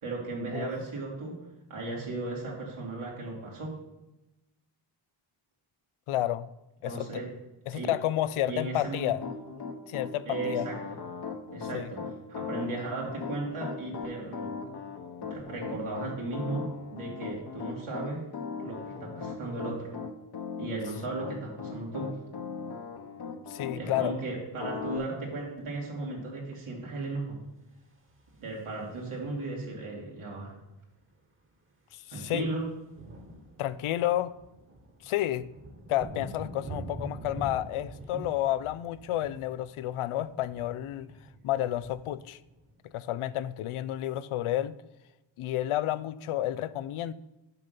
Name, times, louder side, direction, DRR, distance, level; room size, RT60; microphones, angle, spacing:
voice 1, 0.0-1.4 1.7-3.7 6.8-7.3 7.7-7.9 8.4-9.1 10.3-10.8 11.5-12.0 12.3-14.5 15.2-18.2 18.6-19.9 20.6-22.1 23.7-27.4 28.4-30.5 32.1-32.7 38.1-38.2, right 2 dB, 80° right, -3 dB, 2.8 m, -36 dB
voice 2, 6.1-6.5 6.8-7.1 7.7-9.2 9.9-10.7 11.7-11.9 23.5-24.1 31.9-32.5 33.6-34.3 35.0-35.5 35.9-41.1 41.4-42.4 42.8-44.7 45.4-47.1, left 13 dB, 80° left, 17 dB, 0.5 m, -30 dB
Piano, 8.9-24.1 24.6-25.0, left 5 dB, 50° left, 1.1 m, -38 dB
sound 1, 27.8-29.3 30.6-30.7 30.9-31.2 31.4-43.5, right 1 dB, 25° right, 1.3 m, -46 dB
6.7 x 5.2 x 5.9 m, 0.98 s
cardioid pair, 65°, 49 cm